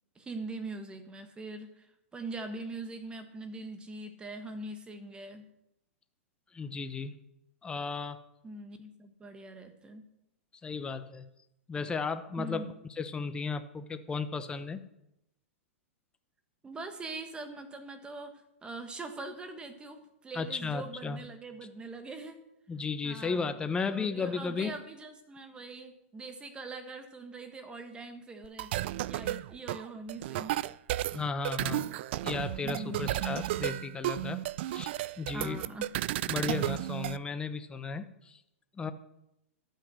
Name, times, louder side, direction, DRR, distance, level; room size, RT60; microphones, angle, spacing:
voice 1, 0.1-1.8 2.1-5.5 8.4-10.0 12.4-12.7 16.6-22.4 23.0-23.5 23.9-28.8 29.0-30.6 32.6-33.2 35.3-35.9, right 3 dB, 15° right, 7 dB, 1.5 m, -42 dB
voice 2, 6.5-7.1 7.6-8.2 10.6-11.2 11.7-14.8 20.3-21.2 22.7-24.8 31.1-31.9 32.2-34.4 34.7-34.9 35.2-35.6 36.3-38.4 38.7-38.9, left 4 dB, 10° left, 10 dB, 0.9 m, -34 dB
sound 1, 28.4-37.2, right 15 dB, 55° right, 0.4 m, -33 dB
12.5 x 9.0 x 6.3 m, 0.85 s
hypercardioid pair, 135°, 7 cm